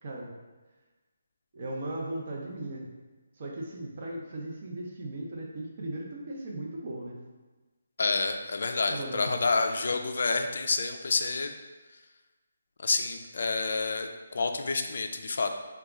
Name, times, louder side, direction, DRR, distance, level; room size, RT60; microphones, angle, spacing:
voice 1, 0.0-0.3 1.5-2.9 3.4-7.1 8.9-9.3, right 1 dB, 45° right, -2 dB, 0.6 m, -37 dB
voice 2, 8.0-11.5 12.8-15.5, left 3 dB, 65° left, 6 dB, 0.3 m, -28 dB
2.9 x 2.3 x 3.6 m, 1.2 s
hypercardioid pair, 165°, 0 cm